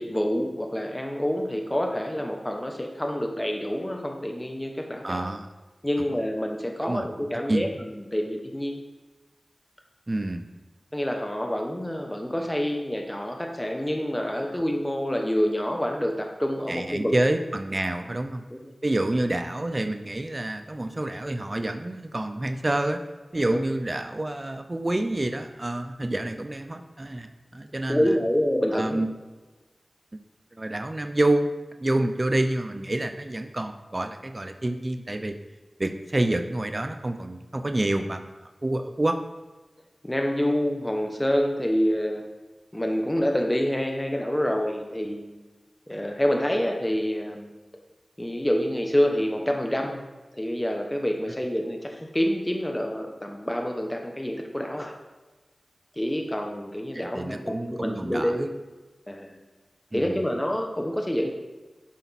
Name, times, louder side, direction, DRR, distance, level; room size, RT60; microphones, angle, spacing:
voice 1, 0.0-5.2 5.8-8.8 10.9-17.1 18.5-18.6 23.5-23.6 27.9-29.0 40.0-42.2 42.7-45.3 45.9-47.4 48.2-50.0 50.4-54.9 56.0-58.5 59.1-59.4 59.9-61.3, equal, 15° left, 2 dB, 1.1 m, -27 dB
voice 2, 5.0-5.5 6.8-7.1 7.5-7.7 10.1-10.4 14.5-14.6 16.7-18.4 18.8-23.0 23.3-28.2 28.7-29.1 30.6-31.5 31.8-35.3 35.8-38.2 38.6-39.2 56.9-58.5 59.9-60.2, right 1 dB, 35° right, 7 dB, 0.7 m, -28 dB
11.5 x 5.2 x 4.2 m, 1.2 s
cardioid pair, 45°, 0 cm